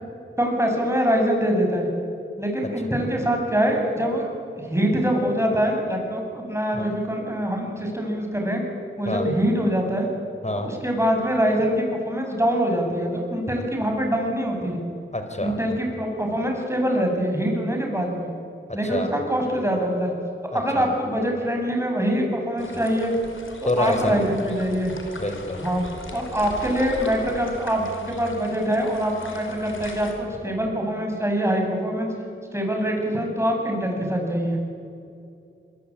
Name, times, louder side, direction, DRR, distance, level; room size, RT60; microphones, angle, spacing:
voice 1, 0.4-1.9 2.4-4.3 4.6-8.6 9.0-10.1 10.6-14.8 15.4-18.3 18.7-20.1 20.5-23.1 23.8-24.9 25.6-25.8 26.1-32.1 32.5-34.6, equal, 10° right, 1 dB, 7.9 m, -24 dB
voice 2, 15.1-15.6 18.7-19.1 20.5-20.8 23.6-24.2 25.2-25.6, left 1 dB, 35° left, 6 dB, 4.9 m, -26 dB
sound 1, 22.6-30.1, left 2 dB, 70° left, 4.9 m, -38 dB
27.0 x 23.0 x 8.8 m, 2.6 s
wide cardioid pair, 55°, 21 cm